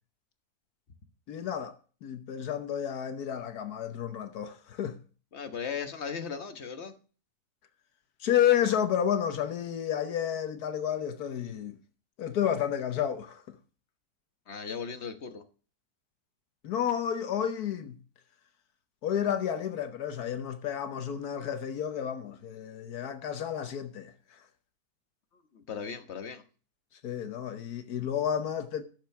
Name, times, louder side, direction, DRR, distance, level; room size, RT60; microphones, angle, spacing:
voice 1, 1.3-1.7 2.0-5.0 8.2-11.8 12.2-13.6 16.6-18.0 19.0-24.4 27.0-28.8, left 9 dB, 75° left, 1.4 m, -31 dB
voice 2, 5.3-6.9 14.5-15.4 25.5-26.4, left 6 dB, 45° left, 1.4 m, -37 dB
12.0 x 6.9 x 5.8 m
omnidirectional pair, 1.6 m